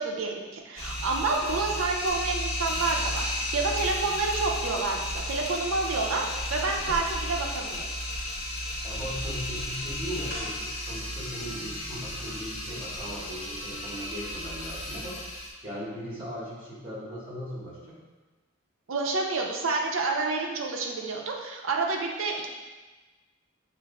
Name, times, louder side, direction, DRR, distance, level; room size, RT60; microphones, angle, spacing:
voice 1, 0.0-7.8 18.9-22.5, right 3 dB, 75° right, 1 dB, 0.5 m, -29 dB
sound 1, 0.8-15.5, left 1 dB, 70° left, 1.0 m, -33 dB
voice 2, 8.8-15.2 15.6-18.0, equal, 25° right, -9 dB, 1.4 m, -38 dB
5.9 x 2.5 x 2.2 m, 1.3 s
head